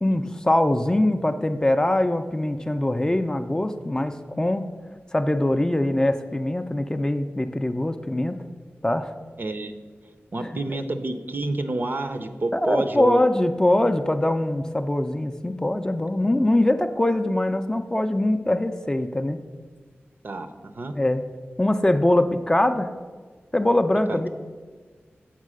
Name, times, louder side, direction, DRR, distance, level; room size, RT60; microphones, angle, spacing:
voice 1, 0.0-4.7 5.1-8.4 8.8-9.1 10.4-10.5 12.5-19.4 20.9-21.2 21.6-22.9 23.5-24.3, left 1 dB, 15° left, 8 dB, 0.4 m, -22 dB
voice 2, 9.4-9.7 10.3-13.2 20.2-20.9 24.1-24.2, right 2 dB, 50° right, 8 dB, 0.6 m, -28 dB
7.4 x 4.6 x 6.2 m, 1.5 s
wide cardioid pair, 100°, 4 cm